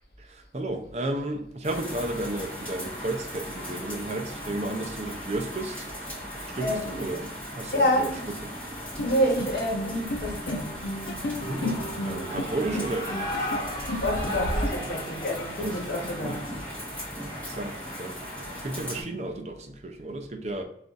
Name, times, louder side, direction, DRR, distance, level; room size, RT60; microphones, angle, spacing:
voice 1, 0.2-5.9 6.5-8.1 11.4-13.6 15.6-16.4 17.4-18.2 18.6-20.6, right 2 dB, 40° right, 0.5 m, -33 dB
sound 1, 1.6-19.0, equal, 5° left, 1.4 m, -38 dB
voice 2, 6.6-6.9 7.7-8.3 9.0-10.8 14.0-16.4, equal, 60° left, 1.1 m, -28 dB
sound 2, 9.0-14.7, left 1 dB, 90° left, 0.7 m, -33 dB
Shout / Cheering, 11.1-18.8, left 1 dB, 25° left, 1.0 m, -37 dB
3.5 x 2.5 x 3.9 m
head